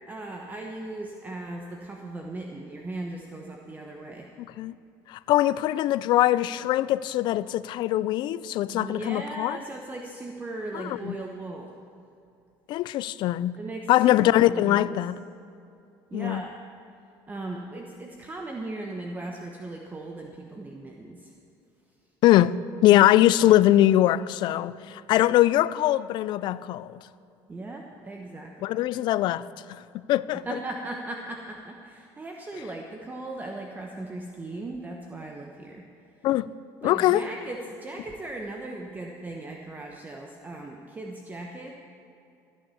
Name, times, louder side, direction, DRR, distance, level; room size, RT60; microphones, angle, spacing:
voice 1, 0.1-4.3 8.7-11.8 13.6-15.0 16.1-16.6 17.3-21.3 27.5-28.7 30.4-35.9 36.2-36.3 36.8-41.7, right 2 dB, 20° right, 1.1 m, -38 dB
voice 2, 5.1-9.6 10.7-11.1 12.7-13.6 13.9-15.1 16.1-16.4 22.2-22.5 22.8-27.0 28.6-29.5 30.1-30.4 36.2-36.5 36.8-37.2, left 14 dB, 60° left, 0.4 m, -22 dB
14.5 x 10.0 x 7.1 m
cardioid pair, 115°, 9 cm